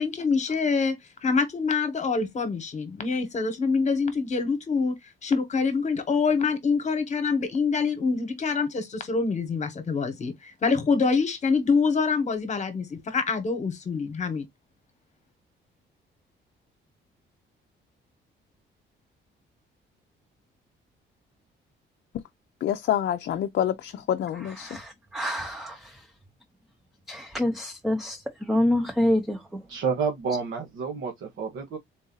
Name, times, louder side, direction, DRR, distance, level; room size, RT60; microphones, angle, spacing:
voice 1, 0.0-14.4, left 4 dB, 35° left, 1.2 m, -25 dB
voice 2, 22.6-24.7, left 10 dB, 60° left, 0.5 m, -27 dB
voice 3, 24.6-25.9 27.1-29.6, left 1 dB, ahead, 0.6 m, -27 dB
voice 4, 29.7-31.8, right 5 dB, 75° right, 1.1 m, -29 dB
3.9 x 2.6 x 3.8 m
cardioid pair, 135°, 20 cm